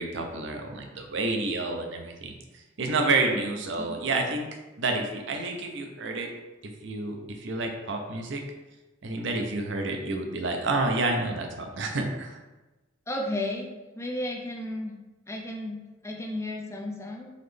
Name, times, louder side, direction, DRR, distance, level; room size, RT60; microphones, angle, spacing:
voice 1, 0.0-2.3 2.8-4.5 4.8-6.3 6.6-8.4 9.0-12.4, right 3 dB, 65° right, 3 dB, 0.6 m, -29 dB
voice 2, 13.1-14.9 15.3-17.3, left 1 dB, 15° left, 0 dB, 0.5 m, -33 dB
4.0 x 3.1 x 3.3 m, 1.1 s
head